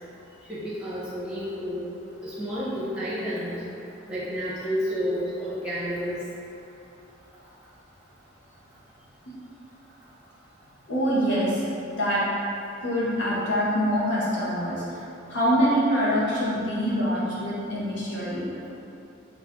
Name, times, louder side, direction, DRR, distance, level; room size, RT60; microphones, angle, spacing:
voice 1, 0.5-1.8 2.2-3.6 4.1-6.1, equal, 5° right, -9 dB, 0.8 m, -30 dB
voice 2, 10.9-11.6 12.0-12.2 12.8-15.0 15.3-18.5, equal, 75° left, -8 dB, 0.9 m, -25 dB
3.4 x 2.5 x 3.5 m, 2.7 s
head